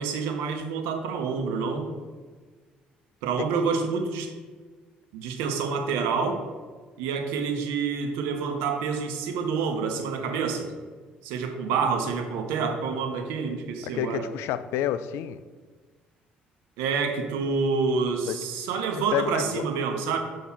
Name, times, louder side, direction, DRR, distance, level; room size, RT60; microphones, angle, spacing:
voice 1, 0.0-1.9 3.2-4.3 5.1-6.4 7.0-10.7 11.2-14.3 16.8-20.2, right 5 dB, 70° right, 4 dB, 0.8 m, -28 dB
voice 2, 13.8-15.4 18.3-18.4 19.1-19.6, left 11 dB, 65° left, 14 dB, 0.3 m, -29 dB
7.2 x 2.8 x 5.9 m, 1.4 s
figure-of-eight pair, 50°, 5 cm